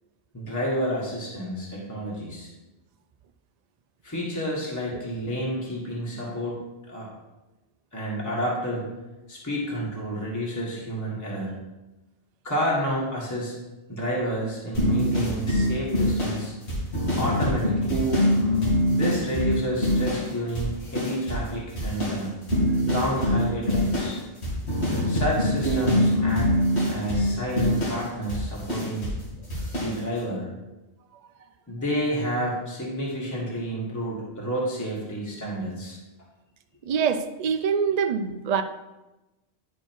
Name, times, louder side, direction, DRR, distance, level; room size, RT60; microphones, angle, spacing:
voice 1, 0.3-2.5 4.0-6.6 6.9-7.1 7.9-8.8 9.3-11.6 12.4-13.5 13.9-16.5 17.1-18.0 18.9-22.3 22.8-24.2 25.1-26.5 26.8-29.1 29.8-30.5 31.7-36.0, equal, 15° left, -5 dB, 1.6 m, -30 dB
sound 1, 14.7-20.3 20.5-21.5 21.8-29.2 29.5-30.0, equal, 80° left, 2.6 m, -24 dB
voice 2, 36.8-38.6, right 6 dB, 55° right, 8 dB, 0.4 m, -25 dB
10.5 x 4.5 x 4.5 m, 1.0 s
omnidirectional pair, 1.1 m